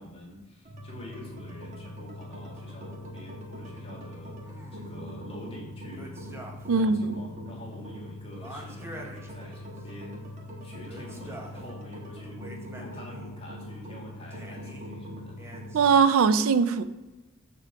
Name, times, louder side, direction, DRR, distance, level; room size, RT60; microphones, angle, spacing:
voice 1, 0.0-4.3 4.7-6.2 6.7-10.3 10.6-12.4 12.8-15.4, left 1 dB, 30° left, -3 dB, 1.7 m, -46 dB
sound 1, 0.6-16.0, left 1 dB, 35° right, 1.1 m, -42 dB
sound 2, 4.4-5.0 5.9-6.9 7.1-7.2 8.3-9.9 10.8-11.7 12.2-13.3 14.3-14.9 15.4-16.1, right 1 dB, 10° right, 0.7 m, -46 dB
voice 2, 6.7-7.2 15.7-16.8, right 5 dB, 75° right, 13 dB, 0.4 m, -21 dB
6.6 x 3.8 x 4.7 m, 1.1 s
head